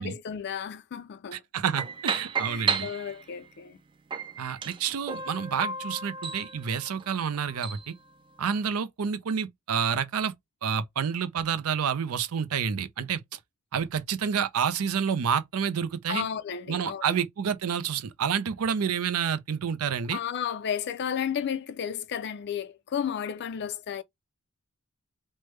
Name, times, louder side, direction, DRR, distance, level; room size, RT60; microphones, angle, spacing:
voice 1, 0.0-1.4 2.4-3.8 16.1-17.1 20.1-24.0, left 8 dB, 50° left, 0.4 m, -33 dB
voice 2, 1.3-2.9 4.4-7.9 8.4-10.3 10.6-13.4 13.7-16.2 16.7-20.2, right 7 dB, 80° right, 0.5 m, -29 dB
sound 1, 1.8-3.5 4.1-7.9, right 5 dB, 20° right, 0.4 m, -33 dB
3.2 x 2.1 x 3.1 m
head